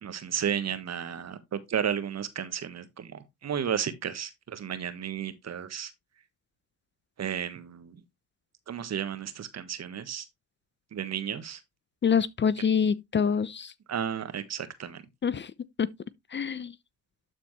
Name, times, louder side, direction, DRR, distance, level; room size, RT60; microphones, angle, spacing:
voice 1, 0.0-5.9 7.2-8.0 8.7-10.3 10.9-11.6 13.9-15.0, right 8 dB, 50° right, 1.4 m, -33 dB
voice 2, 12.0-13.7 15.2-15.5 15.8-15.9 16.3-16.7, left 7 dB, 35° left, 0.6 m, -26 dB
12.0 x 4.3 x 3.2 m
supercardioid pair, 55°, 33 cm